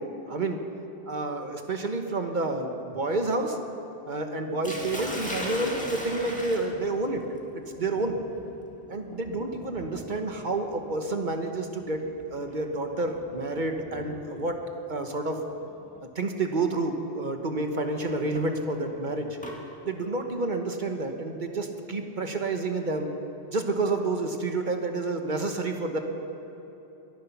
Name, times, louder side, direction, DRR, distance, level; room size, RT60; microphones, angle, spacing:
voice 1, 0.3-0.6 1.1-3.6 4.0-7.2 7.5-8.2 8.9-14.6 14.9-15.4 16.1-19.4 19.8-23.2 23.5-26.0, right 2 dB, 45° right, 5 dB, 1.3 m, -29 dB
Sink (filling or washing), 4.6-14.6 15.7-16.0 16.5-16.6 18.1-19.6, equal, 5° left, 1.9 m, -40 dB
22.0 x 11.0 x 5.9 m, 3.0 s
omnidirectional pair, 1.1 m